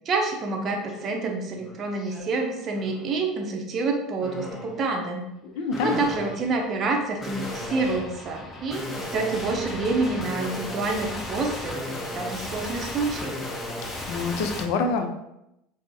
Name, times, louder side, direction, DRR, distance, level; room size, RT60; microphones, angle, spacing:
voice 1, 0.1-5.2 5.8-13.4, right 3 dB, 35° right, 2 dB, 0.6 m, -28 dB
sound 1, 0.9-1.1 1.5-2.2 2.7-3.1 4.2-4.8 5.7-14.6, left 2 dB, 20° left, 0.8 m, -35 dB
voice 2, 5.4-6.0 14.1-15.2, left 4 dB, 60° left, 6 dB, 0.4 m, -26 dB
4.4 x 2.0 x 2.6 m, 0.86 s
figure-of-eight pair, 75°, 0 cm